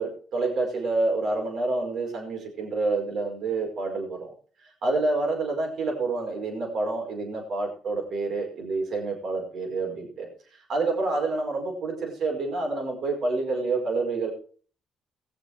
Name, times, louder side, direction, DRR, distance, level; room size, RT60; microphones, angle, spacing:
voice 1, 0.0-4.3 4.8-10.3 10.7-14.3, right 3 dB, 70° right, 1 dB, 5.1 m, -28 dB
20.0 x 7.2 x 4.8 m, 0.43 s
cardioid pair, 90°, 0 cm